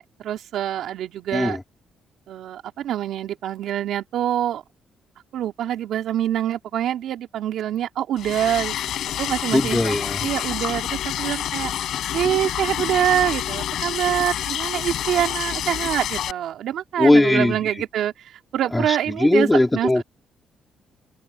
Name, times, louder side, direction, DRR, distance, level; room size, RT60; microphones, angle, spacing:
voice 1, 0.0-1.6 2.3-4.6 5.3-8.8 9.2-10.0 10.2-11.7 12.1-19.5 19.7-20.0, right 11 dB, 75° right, 2.9 m, -25 dB
Liquid, 8.2-16.3, left 11 dB, 75° left, 6.9 m, -28 dB
voice 2, 9.5-10.3 17.0-17.6 18.7-20.0, left 1 dB, 15° left, 2.9 m, -19 dB
cardioid pair, 90°, 0 cm